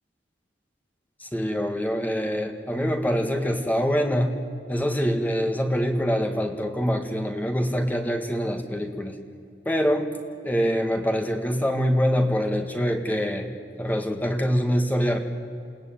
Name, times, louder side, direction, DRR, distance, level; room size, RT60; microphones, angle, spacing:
voice 1, 1.2-4.3 4.7-9.2 9.7-10.1 10.4-13.5 13.8-15.2, equal, 10° left, 4 dB, 1.9 m, -24 dB
28.5 x 18.5 x 9.2 m, 2.5 s
head